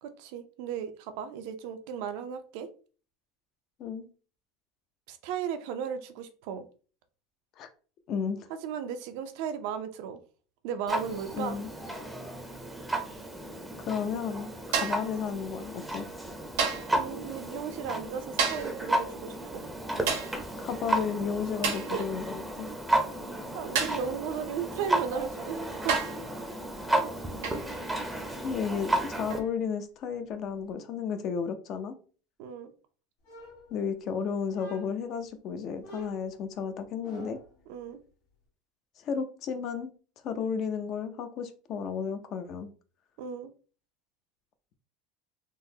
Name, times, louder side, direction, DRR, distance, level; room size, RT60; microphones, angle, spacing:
voice 1, 0.0-2.7 5.1-6.6 8.6-10.2 10.6-11.6 16.9-19.6 21.9-22.0 23.5-26.0 32.4-32.7 37.7-38.0 43.2-43.5, right 7 dB, 70° right, 9 dB, 0.4 m, -35 dB
voice 2, 8.1-8.5 11.3-11.7 13.8-16.1 20.6-22.7 26.8-27.0 28.4-32.0 33.7-37.4 39.0-39.9 40.2-42.7, left 6 dB, 50° left, 9 dB, 0.5 m, -33 dB
Clock, 10.9-29.4, right 1 dB, 5° right, 0.6 m, -33 dB
sound 1, 14.7-15.1 16.6-17.0 18.4-18.8 20.1-20.4 21.6-21.9 23.8-24.1 25.2-25.3 25.9-26.3 27.4-27.7 29.3-29.5, right 6 dB, 85° right, 0.9 m, -30 dB
sound 2, 33.2-34.1 34.5-35.1 35.8-37.6, equal, 85° left, 1.5 m, -47 dB
3.7 x 2.0 x 2.7 m, 0.39 s
supercardioid pair, 120°, 0 cm